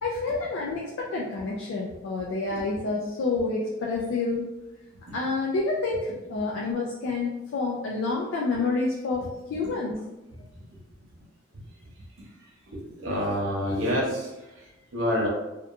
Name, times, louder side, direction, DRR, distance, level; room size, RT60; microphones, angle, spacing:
voice 1, 0.0-4.5 5.1-10.1, left 3 dB, 75° left, -3 dB, 0.4 m, -28 dB
voice 2, 12.7-14.3 14.9-15.3, equal, 75° right, -3 dB, 0.8 m, -27 dB
2.8 x 2.3 x 2.4 m, 1.0 s
head